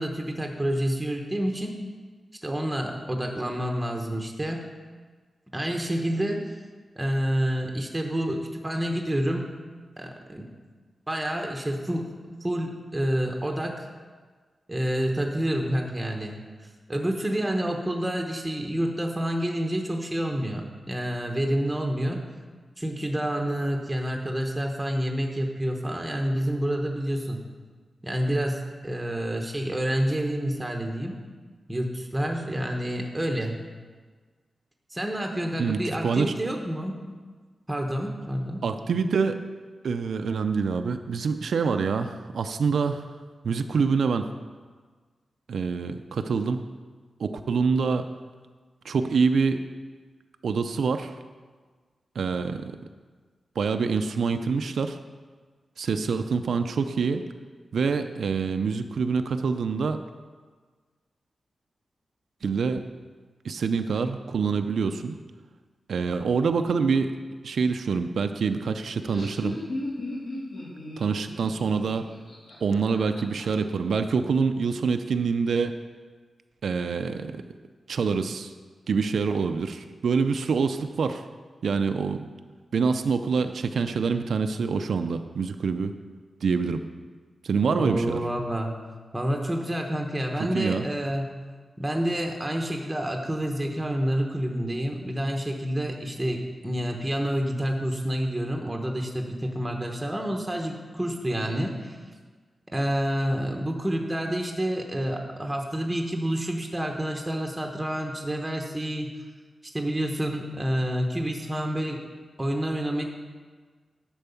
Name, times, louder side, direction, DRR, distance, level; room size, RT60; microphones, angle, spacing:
voice 1, 0.0-1.7 2.4-4.7 5.5-6.4 7.0-9.5 10.0-10.5 11.1-12.1 12.4-13.9 14.7-16.3 16.6-22.2 22.8-27.4 28.0-31.2 31.7-33.5 34.9-37.0 37.7-38.6 87.7-88.8 89.1-91.3 91.8-102.0 102.7-109.1 109.7-112.0 112.4-113.0, equal, 10° right, 2 dB, 0.8 m, -28 dB
voice 2, 35.6-36.3 38.6-39.4 39.8-43.1 43.4-44.3 45.5-46.6 47.2-48.1 48.8-49.6 50.4-51.1 52.2-52.8 53.6-55.0 55.8-57.2 57.7-60.0 62.4-62.9 63.4-65.1 65.9-67.1 67.4-69.6 71.0-72.1 72.6-75.7 76.6-77.4 77.9-78.5 78.9-81.2 81.6-82.3 82.7-86.0 86.4-86.8 87.4-88.2 90.5-90.9, right 5 dB, 75° right, 8 dB, 0.4 m, -26 dB
Laughter, 68.8-73.4, left 1 dB, 65° left, 3.2 m, -36 dB
10.5 x 4.6 x 6.9 m, 1.5 s
wide cardioid pair, 165°, 0 cm